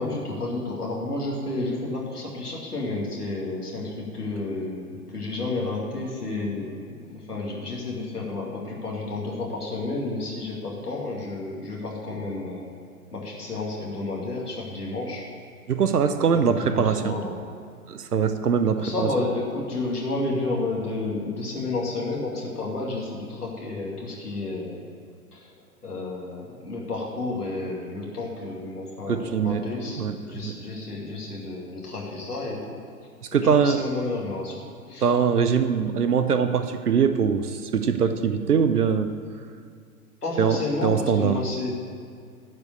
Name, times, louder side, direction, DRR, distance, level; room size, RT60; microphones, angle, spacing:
voice 1, 0.0-12.7 13.1-15.2 16.3-17.4 18.8-24.8 25.3-25.5 25.8-32.8 33.3-35.1 40.2-41.7, left 2 dB, 80° left, -3 dB, 2.5 m, -31 dB
voice 2, 15.7-17.2 17.9-19.1 29.1-29.6 29.9-30.5 33.3-33.8 35.0-39.1 40.4-41.3, right 6 dB, 80° right, 9 dB, 0.8 m, -22 dB
11.0 x 5.3 x 8.4 m, 2.2 s
figure-of-eight pair, 105°, 45 cm